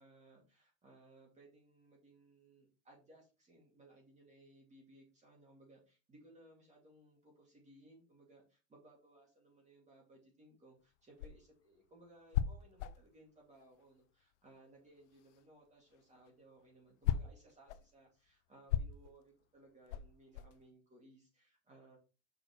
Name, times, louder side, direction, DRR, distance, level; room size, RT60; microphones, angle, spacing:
voice 1, 0.0-22.0, right 1 dB, 20° right, -1 dB, 2.3 m, -63 dB
sound 1, 10.8-14.6 14.9-20.7, left 10 dB, 80° left, 0.6 m, -39 dB
6.1 x 6.0 x 3.1 m, 0.33 s
supercardioid pair, 130°, 35 cm